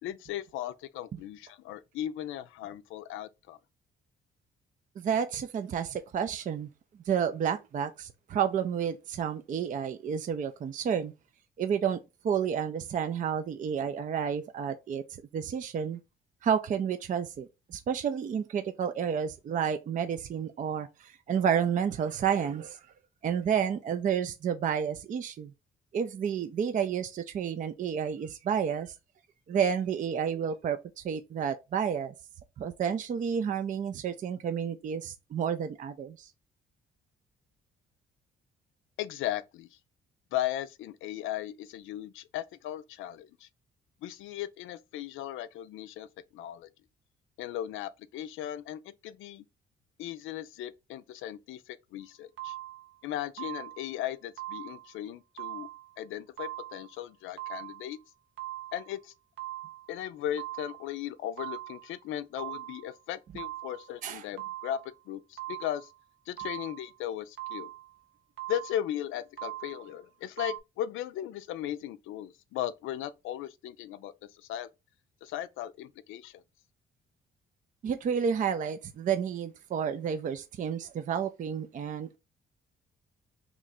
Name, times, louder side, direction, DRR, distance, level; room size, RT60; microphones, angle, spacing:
voice 1, 0.0-3.6 39.0-39.8 40.3-43.5 44.0-46.1 46.3-46.7 47.4-49.4 50.0-52.6 53.0-55.7 56.0-58.0 58.7-59.1 59.9-65.9 66.3-67.7 68.5-74.7 75.2-76.4, left 12 dB, 85° left, 0.4 m, -37 dB
voice 2, 5.0-6.7 7.1-11.1 11.6-12.0 12.2-16.0 16.4-22.8 23.2-25.5 25.9-28.9 29.5-32.1 32.6-36.3 64.0-64.2 77.8-82.2, right 7 dB, 40° right, 0.4 m, -30 dB
sound 1, 52.4-52.9 53.4-53.9 54.4-55.0 55.4-55.9 56.4-56.9 57.4-57.9 58.4-58.9 59.4-59.9 60.4-61.0 61.4-61.9 62.4-62.9 63.4-63.9 64.4-64.9 65.4-66.0 66.4-66.9 67.4-67.9 68.4-68.9 69.4-69.9 70.4-70.6, right 16 dB, 75° right, 0.7 m, -41 dB
3.0 x 2.4 x 4.1 m
cardioid pair, 90°, 20 cm